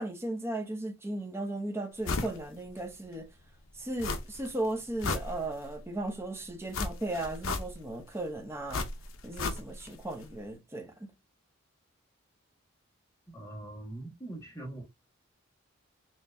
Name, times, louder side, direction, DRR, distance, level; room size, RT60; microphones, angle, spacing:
voice 1, 0.0-3.3 3.8-8.9 9.2-10.9, right 1 dB, 10° right, 0.6 m, -36 dB
sound 1, 2.0-2.4 2.8-2.9 4.0-4.5 4.8-5.8 6.7-8.0 8.7-10.0 10.2-10.3, left 3 dB, 70° left, 0.6 m, -34 dB
voice 2, 13.3-14.8, right 2 dB, 15° left, 1.5 m, -42 dB
4.5 x 3.0 x 2.5 m
head